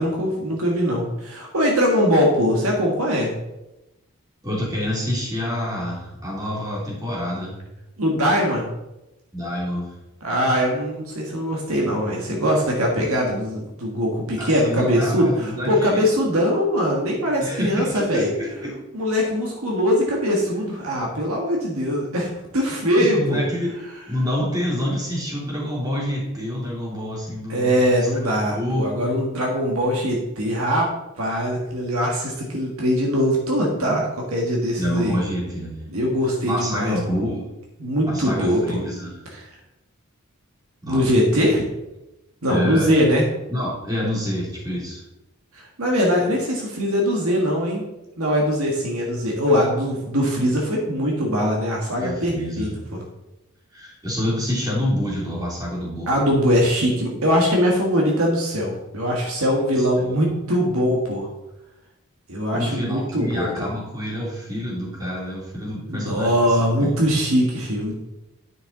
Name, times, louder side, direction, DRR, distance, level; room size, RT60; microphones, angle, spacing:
voice 1, 0.0-3.3 8.0-8.6 10.2-18.3 18.9-23.4 27.5-30.9 31.2-35.1 35.9-36.9 37.8-38.8 39.4-39.5 40.9-41.6 42.4-43.2 45.5-47.8 48.2-52.7 56.1-61.3 62.3-63.7 65.9-68.0, equal, 75° right, -1 dB, 1.6 m, -21 dB
voice 2, 4.4-7.6 9.3-9.9 14.4-16.1 17.4-18.7 23.0-23.7 24.1-27.8 28.2-29.0 34.8-35.7 36.4-37.5 38.1-39.2 40.8-41.1 42.5-42.9 43.5-45.0 52.0-52.8 53.7-56.1 60.1-60.2 62.5-66.9, equal, 15° right, -4 dB, 2.7 m, -27 dB
9.6 x 6.4 x 3.9 m, 0.95 s
head